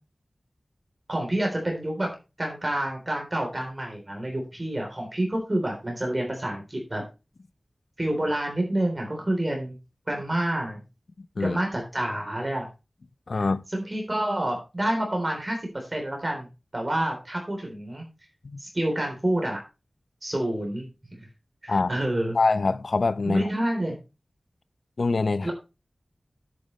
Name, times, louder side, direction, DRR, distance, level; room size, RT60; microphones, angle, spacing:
voice 1, 1.1-2.1 2.4-7.0 8.0-9.8 10.1-10.8 11.4-12.7 13.3-16.5 16.7-18.1 18.6-19.6 20.2-21.2 21.6-22.4 23.3-24.0 25.4-25.5, right 1 dB, 30° right, 3.6 m, -28 dB
voice 2, 13.3-13.6 18.4-18.6 21.7-21.9 22.3-23.5 25.0-25.5, left 3 dB, 75° left, 0.7 m, -24 dB
10.5 x 9.4 x 3.2 m
wide cardioid pair, 75°, 0 cm